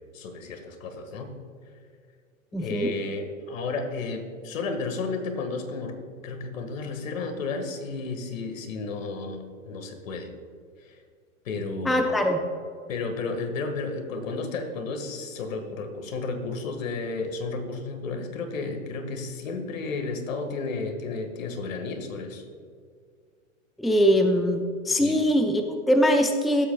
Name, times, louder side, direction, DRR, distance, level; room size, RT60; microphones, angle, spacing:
voice 1, 0.1-1.3 2.6-10.3 10.8-11.0 11.4-12.2 12.9-22.4 25.0-25.2, left 3 dB, 80° left, 6 dB, 1.8 m, -32 dB
voice 2, 2.5-2.9 11.8-12.4 23.8-26.7, equal, ahead, 5 dB, 0.5 m, -22 dB
19.0 x 8.1 x 2.3 m, 2.2 s
hypercardioid pair, 115°, 39 cm